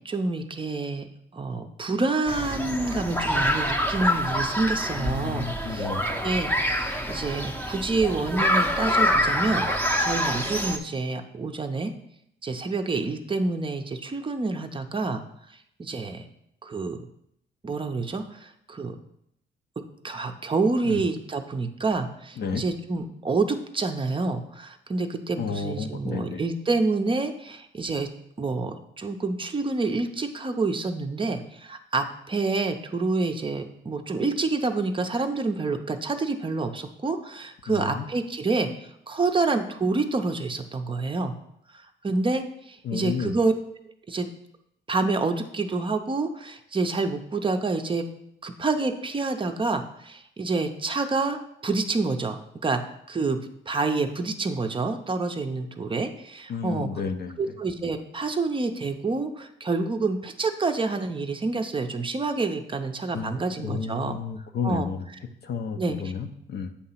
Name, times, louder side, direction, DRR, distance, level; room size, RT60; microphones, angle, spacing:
voice 1, 0.0-1.1 1.3-5.9 6.2-9.7 10.0-11.9 12.4-15.2 15.8-16.2 16.6-17.0 17.6-19.0 20.0-28.1 28.4-41.3 42.0-43.5 44.1-44.3 44.9-48.1 48.4-52.4 52.6-52.8 53.1-53.4 53.7-56.9 57.4-64.2 64.6-64.9 65.8-66.0, right 3 dB, 25° right, 6 dB, 0.6 m, -28 dB
sound 1, 2.3-10.8, equal, 10° left, 0.7 m, -26 dB
voice 2, 5.0-6.1 20.8-21.0 22.4-22.6 25.4-26.4 37.7-38.1 42.8-43.3 56.5-57.6 63.1-65.1 65.4-66.7, left 5 dB, 55° left, 7 dB, 0.7 m, -32 dB
8.4 x 2.9 x 5.6 m, 0.75 s
cardioid pair, 90°, 20 cm